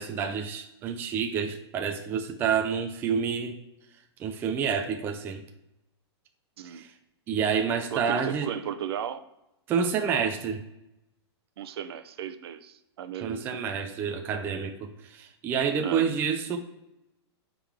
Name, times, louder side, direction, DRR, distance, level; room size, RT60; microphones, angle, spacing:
voice 1, 0.0-3.6 4.2-5.4 6.7-6.9 7.3-8.5 9.7-10.6 13.2-16.6, right 6 dB, 15° right, 4 dB, 0.4 m, -28 dB
voice 2, 7.9-9.2 11.6-13.5 15.8-16.1, right 9 dB, 60° right, 10 dB, 0.7 m, -35 dB
9.2 x 3.7 x 3.5 m, 0.90 s
hypercardioid pair, 160°, 14 cm